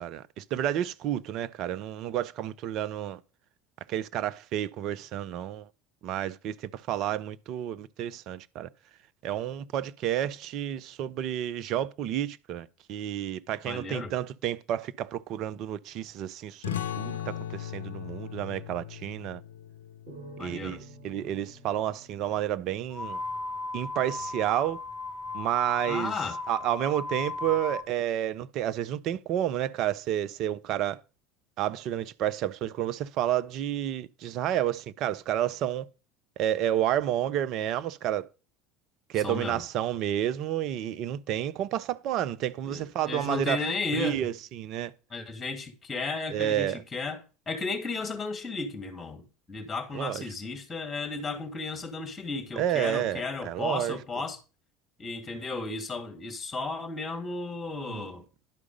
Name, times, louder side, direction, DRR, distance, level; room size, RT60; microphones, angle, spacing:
voice 1, 0.0-3.2 3.9-5.7 6.0-8.7 9.2-19.4 20.4-23.2 23.7-24.8 25.3-26.1 26.5-31.0 31.6-35.9 36.4-38.3 39.1-43.6 43.9-44.9 46.3-46.8 49.9-50.2 52.6-54.0 57.9-58.1, right 11 dB, 55° right, 0.6 m, -30 dB
voice 2, 13.6-14.1 20.4-20.8 25.9-26.4 39.2-39.6 42.6-44.2 45.1-54.4 55.0-58.2, left 3 dB, 20° left, 2.0 m, -34 dB
sound 1, 16.6-21.8, left 10 dB, 85° left, 0.6 m, -38 dB
sound 2, 20.1-23.5, right 3 dB, 70° right, 5.2 m, -50 dB
sound 3, 22.9-27.9, left 3 dB, 10° right, 2.6 m, -36 dB
11.0 x 4.8 x 5.2 m
hypercardioid pair, 75°, 0 cm